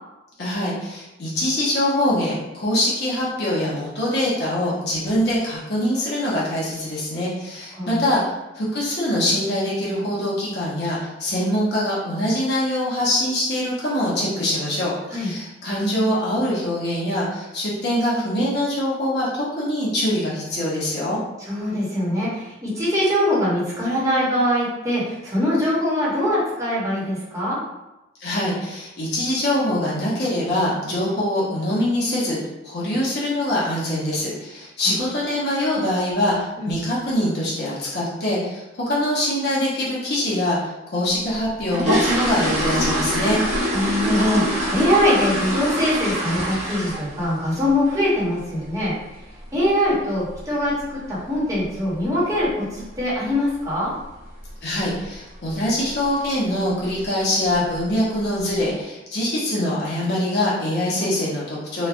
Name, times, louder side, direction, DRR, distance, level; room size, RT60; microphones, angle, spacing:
voice 1, 0.4-8.2 8.5-21.2 28.2-32.4 32.6-36.4 36.7-43.4 54.6-61.9, left 1 dB, 60° left, -7 dB, 0.8 m, -23 dB
voice 2, 21.5-27.6 34.8-35.0 36.6-36.7 43.7-49.0 49.5-53.9, left 1 dB, 15° right, -9 dB, 1.0 m, -22 dB
sound 1, 41.3-47.2 47.5-47.8 48.2-48.3 48.6-48.8 49.1-49.4 49.6-49.7 50.3-50.4 50.7-50.8 51.3-51.6 51.9-52.0 52.4-52.6 52.9-53.0 53.5-53.6 54.2-54.5 54.8-55.1 55.5-55.6 56.0-56.1 56.9-57.0 57.4-57.9 58.4-58.5, equal, 35° right, 0.7 m, -24 dB
3.1 x 2.2 x 2.4 m, 0.99 s
head